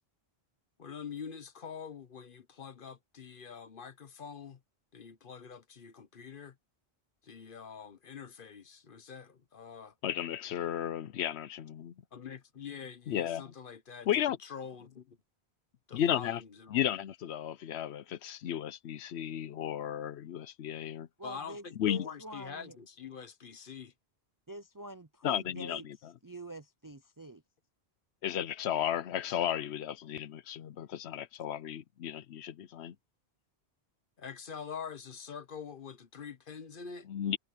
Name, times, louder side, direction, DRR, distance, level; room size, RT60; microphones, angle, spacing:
voice 1, 0.8-4.6 4.9-6.6 7.2-9.9 12.1-14.1 14.4-15.1 15.9-16.9 21.2-23.9 34.2-37.1, left 6 dB, 55° left, 1.2 m, -45 dB
voice 2, 10.0-11.9 13.1-13.4 14.1-14.4 15.9-16.4 16.7-21.1 21.8-22.0 25.2-25.8 28.2-33.0 37.1-37.4, left 10 dB, 80° left, 0.9 m, -34 dB
voice 3, 21.2-22.8 24.5-27.4, right 1 dB, 25° right, 0.5 m, -47 dB
omnidirectional pair, 1.1 m